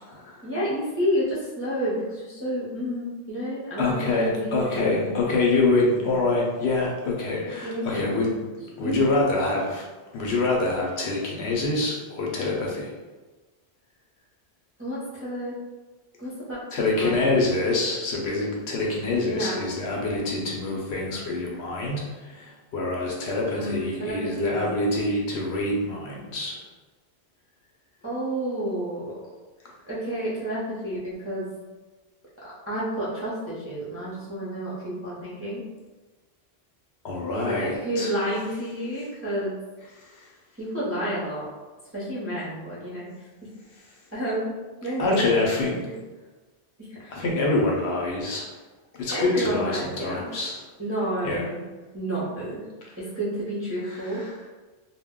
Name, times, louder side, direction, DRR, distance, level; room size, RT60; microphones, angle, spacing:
voice 1, 0.4-5.3 6.0-6.2 7.5-8.1 8.8-9.0 14.8-15.6 16.2-17.2 19.3-19.6 23.5-24.6 28.0-29.2 29.9-31.5 32.7-35.6 37.3-39.5 40.6-41.5 41.9-43.1 44.1-44.5 44.8-45.3 45.8-45.9 46.8-47.1 49.1-50.3 50.8-51.6 51.9-52.7 53.0-54.2, equal, 15° right, -8 dB, 0.4 m, -30 dB
voice 2, 3.8-8.3 8.8-9.8 10.1-12.9 16.7-26.6 37.0-38.1 45.0-45.8 47.1-48.5 49.0-50.6 51.2-51.4 53.8-54.3, left 2 dB, 65° left, -2 dB, 0.8 m, -26 dB
2.1 x 2.1 x 3.5 m, 1.2 s
omnidirectional pair, 1.3 m